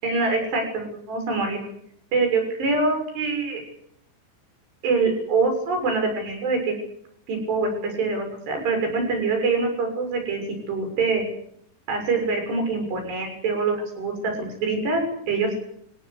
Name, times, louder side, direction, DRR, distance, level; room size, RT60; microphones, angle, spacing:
voice 1, 0.0-1.6 2.1-3.6 4.8-6.8 7.3-10.4 10.7-11.2 11.9-15.6, right 3 dB, 60° right, 5 dB, 8.8 m, -24 dB
28.5 x 18.5 x 8.3 m, 0.70 s
omnidirectional pair, 5.5 m